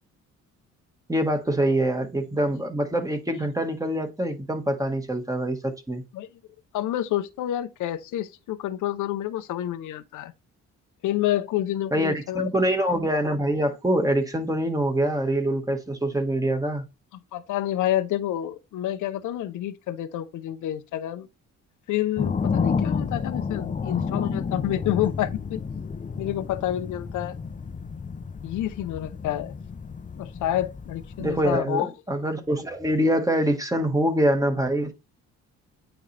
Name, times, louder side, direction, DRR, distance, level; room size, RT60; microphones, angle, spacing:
voice 1, 1.1-6.0 11.9-16.8 31.2-34.9, right 1 dB, 10° right, 1.7 m, -25 dB
voice 2, 6.7-10.3 11.0-12.5 17.3-21.3 21.9-25.6 26.2-27.3 28.4-29.5 30.2-32.2, left 12 dB, 80° left, 0.8 m, -28 dB
sound 1, 22.2-31.5, left 5 dB, 25° left, 0.7 m, -30 dB
8.9 x 3.9 x 3.3 m
cardioid pair, 90°, 30 cm